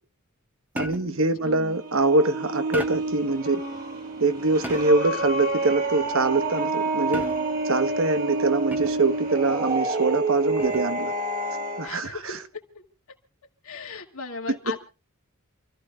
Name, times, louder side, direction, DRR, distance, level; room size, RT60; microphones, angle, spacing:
voice 1, 0.7-3.6 4.2-7.2 7.6-11.1 11.8-12.4 14.5-14.8, right 2 dB, 65° right, 1.2 m, -24 dB
sound 1, 0.8-1.3 2.7-3.2 4.6-5.1 7.1-7.7 8.7-9.2 10.6-11.0, right 1 dB, 10° right, 1.3 m, -35 dB
voice 2, 1.4-1.8 11.8-12.8 13.6-14.8, left 4 dB, 70° left, 2.2 m, -37 dB
sound 2, 1.4-11.9, right 2 dB, 40° right, 2.4 m, -28 dB
sound 3, 2.9-9.8, right 2 dB, 85° right, 3.1 m, -48 dB
28.5 x 14.5 x 2.4 m
head